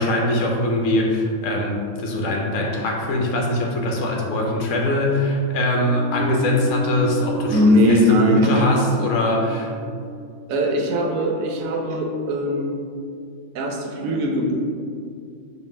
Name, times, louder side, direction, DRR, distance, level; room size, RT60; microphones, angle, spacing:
voice 1, 0.0-9.7, left 1 dB, 70° left, -1 dB, 1.0 m, -22 dB
sound 1, 5.8-12.2, right 2 dB, 55° right, 0.9 m, -34 dB
voice 2, 7.5-8.7 10.5-12.7 13.5-14.5, equal, 80° right, 1 dB, 1.0 m, -20 dB
5.2 x 2.3 x 3.1 m, 2.3 s
omnidirectional pair, 1.4 m